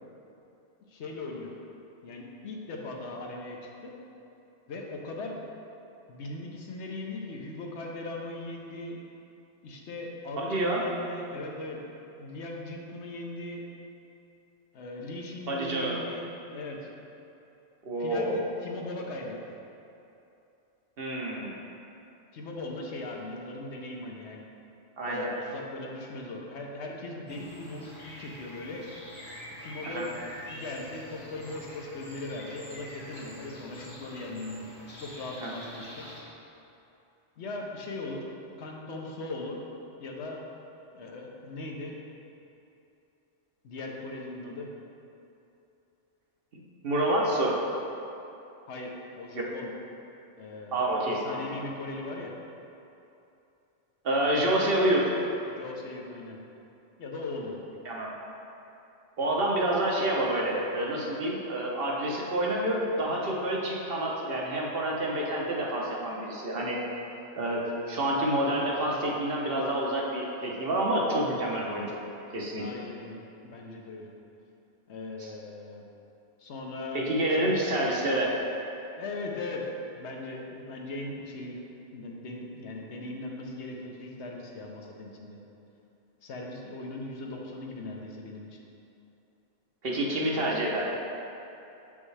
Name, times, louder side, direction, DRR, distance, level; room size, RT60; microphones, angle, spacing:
voice 1, 0.9-1.5 2.0-3.9 4.7-5.4 6.1-9.0 9.6-11.8 12.2-13.6 14.7-16.9 18.0-19.4 22.3-24.4 25.0-28.8 29.6-30.1 30.5-34.7 35.0-36.1 37.4-38.3 38.6-39.6 40.0-40.4 40.9-42.0 43.6-44.7 48.7-49.7 50.4-52.3 55.5-56.4 57.0-57.6 67.4-67.6 72.5-74.1 74.9-75.9 76.4-77.6 79.0-79.7 80.0-81.6 81.9-85.4 86.2-88.6, left 2 dB, 70° left, 0 dB, 1.0 m, -39 dB
voice 2, 10.4-10.8 15.5-16.0 17.8-18.4 21.0-21.5 25.0-25.3 29.8-30.1 35.4-35.5 46.5-47.6 50.7-51.6 54.0-55.1 57.8-58.2 59.2-66.8 67.4-72.0 72.3-72.6 75.2-75.3 76.9-78.4 89.8-90.8, right 1 dB, 55° right, -3 dB, 1.0 m, -28 dB
sound 1, 27.3-36.2, left 1 dB, 45° left, 1.3 m, -45 dB
7.3 x 5.3 x 3.3 m, 2.8 s
omnidirectional pair, 1.2 m